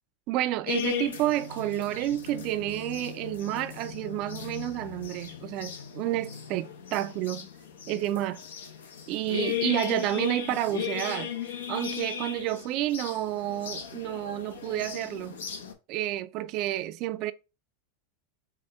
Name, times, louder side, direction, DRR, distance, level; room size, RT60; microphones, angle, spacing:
voice 1, 0.3-7.5 7.9-8.4 9.1-15.4 15.9-17.3, right 14 dB, 50° right, 0.3 m, -30 dB
sound 1, 0.7-15.7, left 8 dB, 80° left, 0.7 m, -37 dB
Piano, 2.3-9.0, left 15 dB, 30° left, 0.7 m, -52 dB
4.3 x 2.1 x 3.5 m
hypercardioid pair, 95°, 0 cm